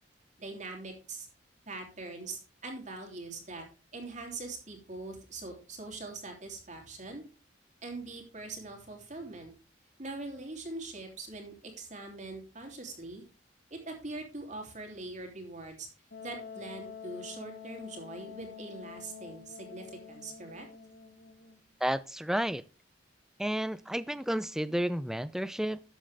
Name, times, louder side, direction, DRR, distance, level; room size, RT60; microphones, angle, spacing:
voice 1, 0.4-1.3 1.7-3.7 3.9-7.2 7.8-9.5 10.0-13.2 13.7-15.9 16.2-20.7, right 2 dB, 40° right, 3.2 m, -42 dB
Wind instrument woodwind instrument, 16.1-21.6, left 6 dB, 90° left, 2.1 m, -47 dB
voice 2, 21.8-22.6 23.4-25.8, equal, 5° right, 0.4 m, -31 dB
13.0 x 7.7 x 3.5 m
head